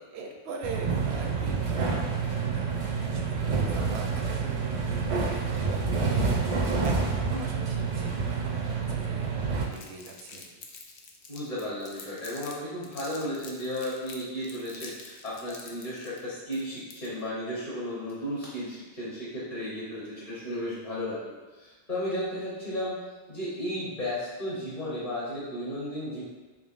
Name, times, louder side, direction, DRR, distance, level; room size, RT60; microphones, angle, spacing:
voice 1, 0.0-10.5, right 3 dB, 80° right, 2 dB, 0.8 m, -42 dB
sound 1, 0.6-9.7, right 4 dB, 50° right, 0.4 m, -28 dB
Crumpling crinkling, 9.7-12.5 12.8-17.3, left 5 dB, 80° left, 0.8 m, -47 dB
voice 2, 11.3-23.0 23.3-26.2, left 1 dB, 40° left, -8 dB, 1.0 m, -34 dB
3.7 x 3.6 x 2.4 m, 1.3 s
omnidirectional pair, 1.1 m